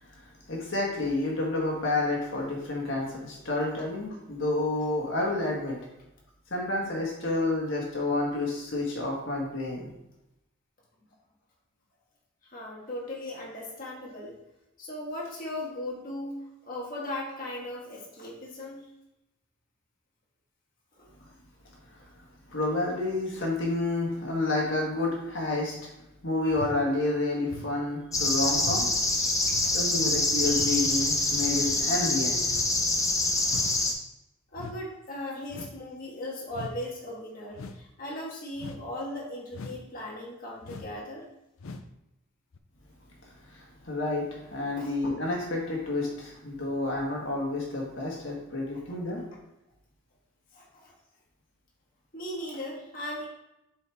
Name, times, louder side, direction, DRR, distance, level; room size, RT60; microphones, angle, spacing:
voice 1, 0.0-5.8 6.5-9.9 21.9-22.0 22.5-25.8 26.2-28.9 29.7-32.4 43.4-49.2, left 2 dB, 60° left, -2 dB, 1.7 m, -29 dB
voice 2, 12.4-14.3 14.8-18.9 21.0-21.1 29.3-29.7 34.5-41.3 44.8-44.9 48.9-49.2 50.5-50.9 52.1-53.3, left 1 dB, 45° left, -4 dB, 1.6 m, -38 dB
sound 1, 26.5-26.8 27.5-27.8 28.5-28.8 29.5-29.8 30.5-30.8 31.5-31.8 32.4-32.8 33.5-33.8 34.5-34.8 35.5-35.8 36.5-36.8 37.5-37.8 38.6-38.9 39.5-39.9 40.6-41.0 41.6-41.9 42.5-42.6, left 3 dB, 80° left, 0.6 m, -41 dB
sound 2, 28.1-33.9, left 2 dB, 15° left, 0.8 m, -26 dB
8.2 x 4.6 x 3.5 m, 0.90 s
head